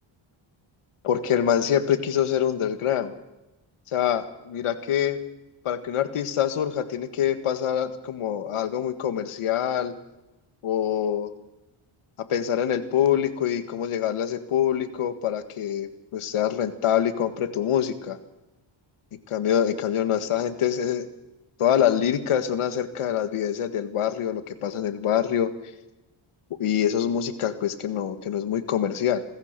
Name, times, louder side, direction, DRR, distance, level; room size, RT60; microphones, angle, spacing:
voice 1, 1.0-3.1 3.9-5.2 5.7-9.9 10.6-11.3 12.3-18.2 19.3-21.1 21.6-25.5 26.6-29.2, left 9 dB, 80° left, 10 dB, 1.9 m, -25 dB
27.0 x 15.5 x 6.8 m, 1.0 s
cardioid pair, 100°, 50 cm